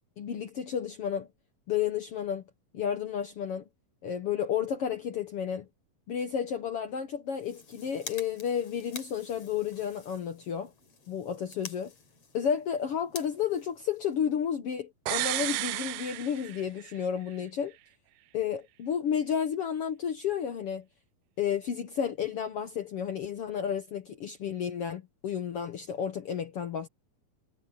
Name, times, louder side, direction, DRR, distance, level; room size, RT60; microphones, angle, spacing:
voice 1, 0.2-1.3 1.7-2.4 2.7-3.6 4.0-5.7 6.1-10.7 11.1-11.9 12.3-17.7 18.3-20.8 21.4-26.9, left 8 dB, 65° left, 1.5 m, -32 dB
sound 1, 7.3-14.6, left 5 dB, 45° left, 4.4 m, -48 dB
sound 2, 15.1-17.0 17.3-17.4, right 17 dB, 80° right, 1.9 m, -33 dB
omnidirectional pair, 4.0 m